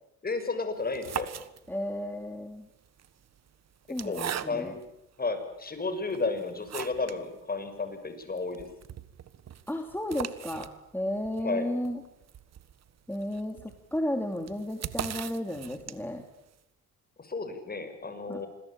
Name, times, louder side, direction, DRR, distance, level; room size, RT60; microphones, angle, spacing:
voice 1, 0.2-1.3 4.0-4.8 5.2-8.7 11.4-11.6 17.2-18.5, left 3 dB, 30° left, 8 dB, 6.5 m, -32 dB
sound 1, 0.8-2.0 2.8-4.9 5.5-5.6 6.1-7.2 7.6-7.7 7.9-8.0 8.4-16.3, right 9 dB, 60° right, 1.6 m, -40 dB
voice 2, 1.7-2.7 3.9-4.7 9.7-12.0 13.1-16.2 18.3-18.4, left 1 dB, 5° left, 4 dB, 3.2 m, -33 dB
27.5 x 21.5 x 8.9 m, 0.82 s
cardioid pair, 90°, 30 cm